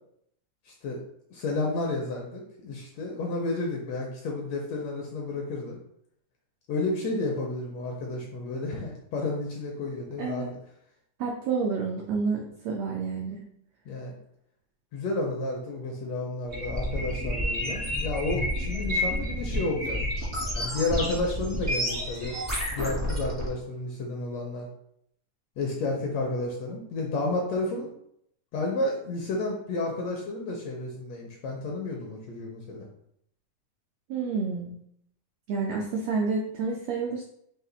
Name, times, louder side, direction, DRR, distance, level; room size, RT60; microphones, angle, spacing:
voice 1, 0.7-1.0 1.3-5.8 6.7-10.6 13.9-14.1 14.9-20.0 20.5-22.4 22.7-24.7 25.6-27.9 28.5-32.9, left 2 dB, 75° left, 0 dB, 1.6 m, -31 dB
voice 2, 10.2-10.5 11.2-13.4 34.1-34.8 35.5-37.2, right 4 dB, 85° right, 0 dB, 1.4 m, -29 dB
sound 1, 16.5-23.5, equal, 20° right, 0.4 m, -30 dB
5.7 x 2.4 x 3.8 m, 0.72 s
omnidirectional pair, 3.6 m